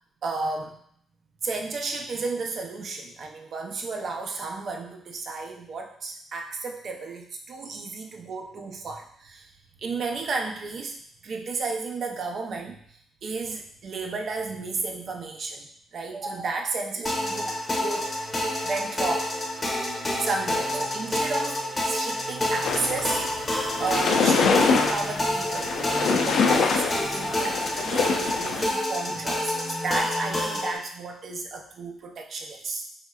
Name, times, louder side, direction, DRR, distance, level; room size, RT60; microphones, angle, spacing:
voice 1, 0.2-0.8 1.4-9.5 9.8-17.5 17.8-18.1 18.6-19.3 19.7-19.8 20.2-23.3 23.8-32.8, right 4 dB, 55° right, 2 dB, 0.5 m, -33 dB
sound 1, 17.1-30.8, left 1 dB, 25° left, 0.7 m, -28 dB
sound 2, 22.6-28.6, left 5 dB, 70° left, 0.4 m, -25 dB
3.1 x 2.8 x 2.3 m, 0.66 s
cardioid pair, 90°, 0 cm